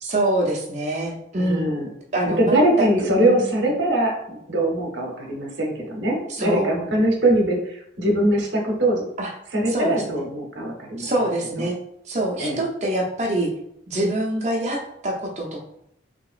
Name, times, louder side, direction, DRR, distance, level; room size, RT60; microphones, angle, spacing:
voice 1, 0.0-1.7 2.1-2.9 3.2-3.5 6.3-6.7 9.2-9.3 9.7-10.2 11.0-11.8 12.1-13.5 13.9-15.6, right 1 dB, 35° right, -2 dB, 0.7 m, -25 dB
voice 2, 1.3-1.9 2.2-9.0 9.5-11.1 11.6-11.7 12.4-12.6, right 1 dB, 75° right, 0 dB, 0.9 m, -22 dB
3.5 x 2.9 x 2.4 m, 0.75 s
head